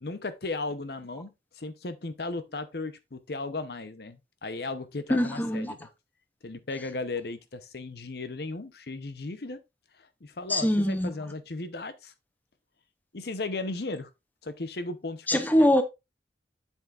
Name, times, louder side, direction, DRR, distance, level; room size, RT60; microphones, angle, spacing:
voice 1, 0.0-5.9 6.4-9.6 10.0-12.1 13.1-14.1 14.4-15.7, left 3 dB, 60° left, 0.8 m, -36 dB
voice 2, 5.1-5.7 10.5-11.1 15.3-15.8, left 1 dB, 10° left, 0.7 m, -23 dB
8.1 x 7.3 x 2.5 m
head